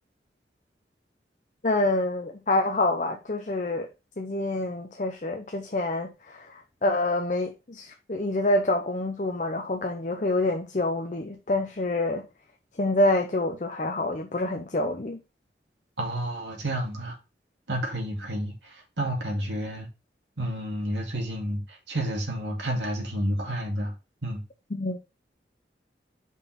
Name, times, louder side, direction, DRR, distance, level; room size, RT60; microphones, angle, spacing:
voice 1, 1.6-3.9 4.2-12.3 12.8-15.2 24.7-25.0, left 2 dB, 45° left, 0.7 m, -27 dB
voice 2, 16.0-17.2 17.7-19.9 20.4-23.9 24.2-24.4, right 1 dB, 90° right, 2.3 m, -30 dB
5.4 x 4.7 x 5.7 m
head